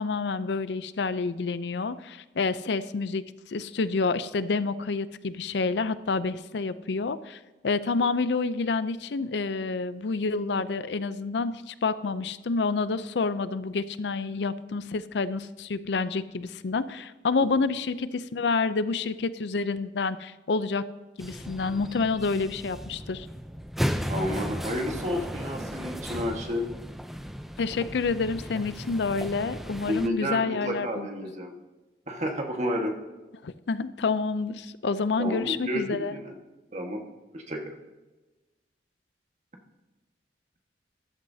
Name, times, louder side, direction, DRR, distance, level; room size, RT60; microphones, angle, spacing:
voice 1, 0.0-20.8 21.2-23.3 27.6-31.1 33.4-36.1, left 4 dB, 75° left, 14 dB, 0.5 m, -28 dB
sound 1, 21.2-30.1, equal, ahead, 0.5 m, -35 dB
voice 2, 24.1-26.7 29.9-31.5 32.1-33.0 35.2-36.3 36.7-37.0 37.3-37.7, equal, 40° right, 2 dB, 1.5 m, -31 dB
13.5 x 11.5 x 2.8 m, 1.1 s
head